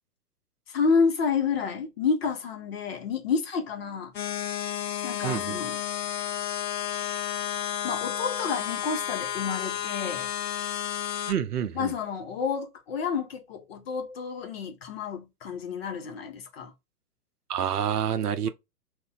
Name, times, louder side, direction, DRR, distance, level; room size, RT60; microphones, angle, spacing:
voice 1, 0.7-4.1 5.0-5.8 7.8-10.3 11.7-16.7 18.4-18.5, left 5 dB, 40° left, 0.7 m, -29 dB
sound 1, 4.1-11.3, left 10 dB, 80° left, 0.6 m, -32 dB
voice 2, 5.2-5.6 11.3-11.9 17.5-18.5, right 9 dB, 70° right, 0.6 m, -28 dB
2.5 x 2.1 x 3.8 m
figure-of-eight pair, 120°, 48 cm